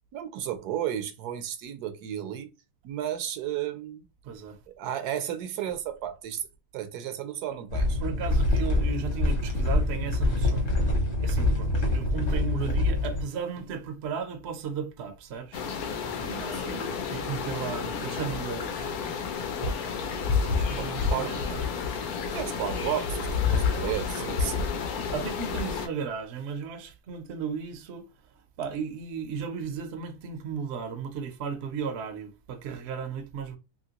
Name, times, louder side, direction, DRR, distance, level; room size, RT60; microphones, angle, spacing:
voice 1, 0.1-2.5 2.8-4.0 4.7-6.5 6.7-8.0 16.2-17.1 20.8-21.6 22.3-24.6, right 10 dB, 80° right, 1.1 m, -34 dB
voice 2, 4.2-4.6 8.0-10.9 11.2-15.6 16.4-18.9 19.3-19.8 20.1-21.7 23.5-24.6 25.1-28.1 28.6-33.6, right 6 dB, 60° right, 0.7 m, -35 dB
sound 1, 7.7-13.2, left 2 dB, 55° left, 1.3 m, -25 dB
sound 2, 15.5-25.9, left 5 dB, 75° left, 1.1 m, -30 dB
2.9 x 2.8 x 2.8 m
omnidirectional pair, 1.7 m